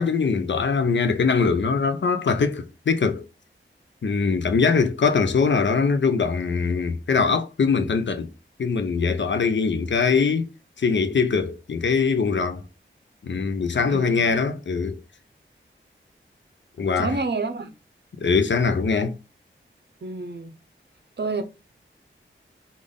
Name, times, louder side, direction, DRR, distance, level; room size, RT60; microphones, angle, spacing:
voice 1, 0.0-3.2 4.0-8.3 8.6-10.5 10.8-12.6 13.2-15.0 16.8-17.1 18.2-19.2, left 5 dB, 65° left, 0.6 m, -22 dB
voice 2, 13.9-14.3 16.9-17.7 20.0-20.6 21.2-21.4, right 3 dB, 55° right, 0.7 m, -29 dB
3.5 x 2.5 x 3.7 m
wide cardioid pair, 60°, 21 cm